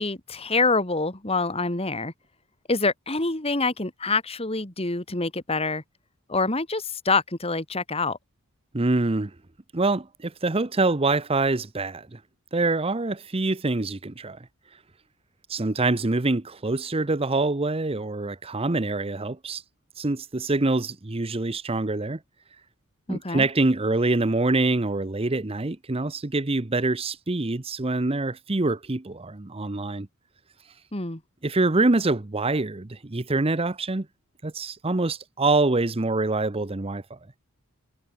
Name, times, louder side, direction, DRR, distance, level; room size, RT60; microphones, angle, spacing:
voice 1, 0.0-2.1 2.7-5.8 6.3-8.2 23.1-23.5 30.9-31.2, left 3 dB, 25° left, 2.4 m, -26 dB
voice 2, 8.7-9.3 9.7-12.2 12.5-14.4 15.5-19.6 20.0-22.2 23.1-30.1 31.4-34.1 34.4-37.2, right 2 dB, 25° right, 0.8 m, -25 dB
head